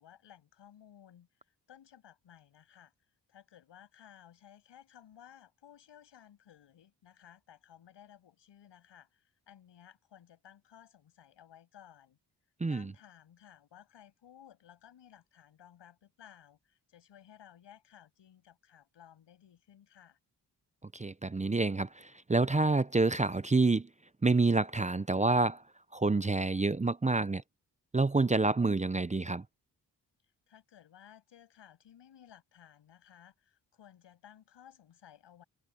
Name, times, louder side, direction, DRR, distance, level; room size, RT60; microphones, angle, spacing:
voice 1, 0.0-2.9 3.3-12.2 12.7-20.2 30.5-35.4, left 10 dB, 85° left, 8.0 m, -57 dB
voice 2, 12.6-12.9 20.9-23.9 24.2-25.6 25.9-27.4 27.9-29.4, right 3 dB, 15° right, 0.6 m, -28 dB
cardioid pair, 60°, 42 cm